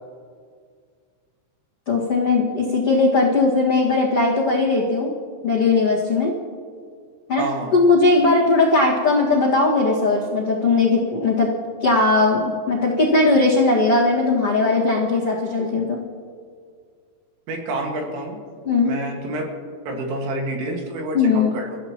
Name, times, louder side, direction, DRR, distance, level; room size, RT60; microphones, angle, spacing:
voice 1, 1.9-5.1 5.4-6.3 7.3-7.4 7.7-11.5 11.8-16.0 18.6-18.9 21.1-21.5, left 3 dB, 65° left, -5 dB, 1.4 m, -18 dB
voice 2, 7.4-7.8 17.5-18.4 18.8-19.4 19.9-21.8, right 2 dB, 80° right, 1 dB, 4.4 m, -28 dB
29.5 x 15.0 x 3.0 m, 2.1 s
omnidirectional pair, 5.8 m